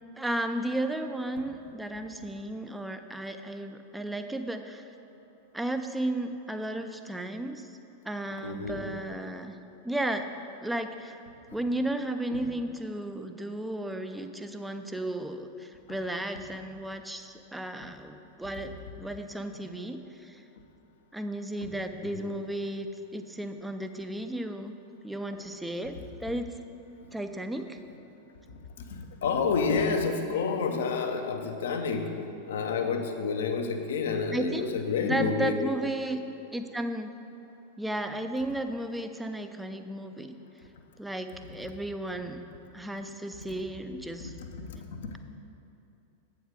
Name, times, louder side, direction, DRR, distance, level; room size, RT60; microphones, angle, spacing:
voice 1, 0.2-4.9 5.5-7.7 8.0-9.5 9.8-11.2 11.5-20.4 21.1-22.9 23.1-24.7 25.0-26.6 27.1-27.8 34.3-34.7 35.0-36.2 36.5-37.1 37.8-40.3 41.0-42.4 42.7-44.3, right 1 dB, 5° right, 7 dB, 0.4 m, -34 dB
voice 2, 8.4-8.9 11.5-11.6 12.3-12.4 22.0-22.3 28.5-32.1 32.5-35.5 44.2-44.3 44.7-45.1, left 5 dB, 60° left, 5 dB, 0.7 m, -29 dB
8.0 x 4.9 x 6.3 m, 2.8 s
figure-of-eight pair, 90°, 0 cm